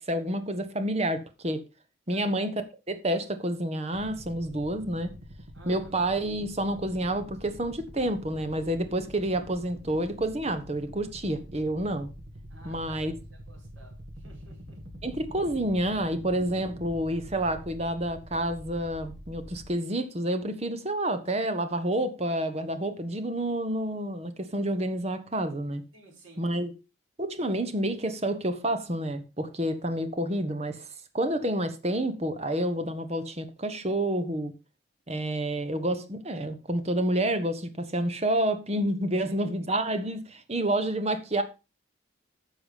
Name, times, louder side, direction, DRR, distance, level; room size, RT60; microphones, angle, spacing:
voice 1, 0.0-1.6 2.1-5.1 5.7-12.1 12.6-13.1 15.0-25.8 26.4-26.7 27.2-30.9 31.1-34.5 35.1-41.4, right 1 dB, 30° right, 1.2 m, -29 dB
sound 1, 3.9-19.7, equal, 65° right, 1.6 m, -45 dB
voice 2, 5.5-5.9 12.5-13.2 13.5-14.8 25.9-26.5 39.3-39.5, right 2 dB, 80° right, 4.8 m, -53 dB
10.0 x 6.1 x 5.1 m
head